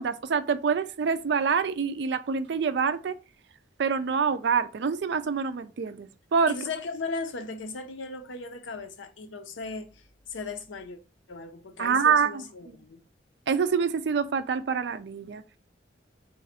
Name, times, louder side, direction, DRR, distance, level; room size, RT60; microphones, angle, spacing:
voice 1, 0.0-3.2 3.8-6.6 11.8-12.4 13.5-15.4, right 6 dB, 65° right, 0.4 m, -26 dB
voice 2, 6.5-10.0 10.3-11.0 11.3-13.0, left 3 dB, 90° left, 0.6 m, -37 dB
3.9 x 2.5 x 4.1 m
head